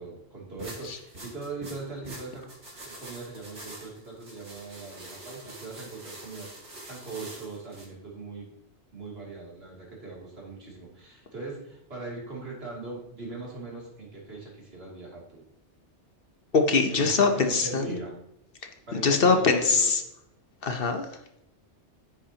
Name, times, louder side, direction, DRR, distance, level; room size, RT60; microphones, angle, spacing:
voice 1, 0.0-8.5 8.9-15.4 16.8-18.1 18.9-19.9, right 3 dB, 60° right, -3 dB, 3.0 m, -40 dB
sound 1, 0.6-7.9, right 1 dB, 85° right, 2.5 m, -45 dB
voice 2, 16.5-18.0 18.9-20.0 20.6-21.1, left 4 dB, 55° left, 6 dB, 1.0 m, -22 dB
9.9 x 8.7 x 2.8 m, 0.81 s
omnidirectional pair, 1.2 m